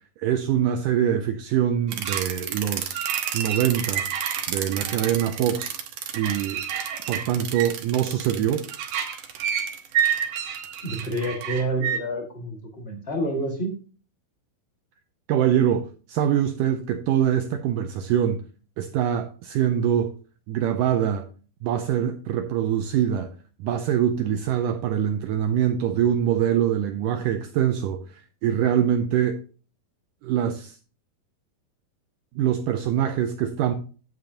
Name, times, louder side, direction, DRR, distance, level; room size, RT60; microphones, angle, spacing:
voice 1, 0.2-4.1 4.5-5.7 6.1-6.6 7.1-8.7 15.3-18.4 18.8-20.1 20.5-21.3 21.6-23.3 23.6-29.4 30.2-30.8 32.4-33.7, right 10 dB, 85° right, 1.8 m, -24 dB
sound 1, 1.9-12.0, right 9 dB, 65° right, 2.4 m, -29 dB
voice 2, 10.8-13.8, right 1 dB, 50° left, 0.7 m, -28 dB
10.5 x 7.8 x 2.8 m
omnidirectional pair, 4.4 m